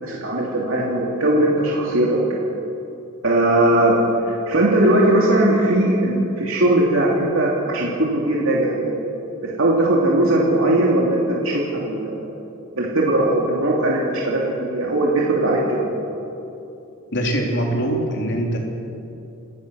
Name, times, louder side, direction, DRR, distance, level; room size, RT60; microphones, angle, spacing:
voice 1, 0.0-2.2 3.2-4.0 4.3-9.0 9.4-12.3 12.8-15.9, right 1 dB, 70° right, -4 dB, 2.9 m, -19 dB
voice 2, 17.1-18.6, right 1 dB, 55° left, 0 dB, 3.6 m, -22 dB
28.0 x 15.0 x 6.5 m, 2.8 s
head